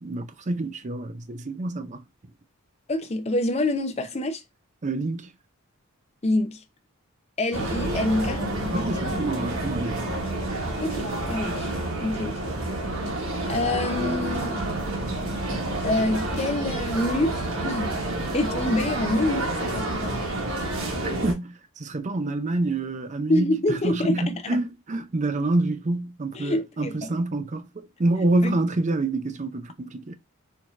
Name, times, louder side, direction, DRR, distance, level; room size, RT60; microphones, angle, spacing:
voice 1, 0.0-2.0 4.8-5.3 8.7-10.0 21.2-27.7 28.0-30.1, right 2 dB, 35° right, 0.5 m, -27 dB
voice 2, 2.9-4.4 6.2-6.6 7.4-8.4 10.8-11.7 12.0-12.4 13.5-14.6 15.8-17.9 18.3-20.3 23.3-24.6 26.3-27.2 28.4-28.6, left 1 dB, 30° left, 0.5 m, -26 dB
sound 1, 7.5-21.3, right 1 dB, 65° right, 1.2 m, -29 dB
4.5 x 2.8 x 2.3 m
head